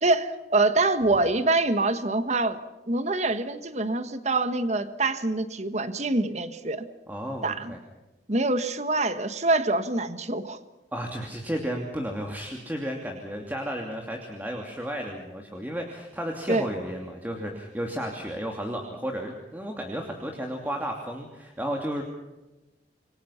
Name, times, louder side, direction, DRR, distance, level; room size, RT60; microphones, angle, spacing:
voice 1, 0.0-2.6 2.9-6.8 7.4-7.7 8.3-10.6 16.5-16.7, right 2 dB, 40° right, 11 dB, 1.5 m, -25 dB
voice 2, 7.1-7.8 10.9-22.0, equal, 10° right, 1 dB, 2.7 m, -33 dB
28.0 x 23.5 x 5.8 m, 1.0 s
head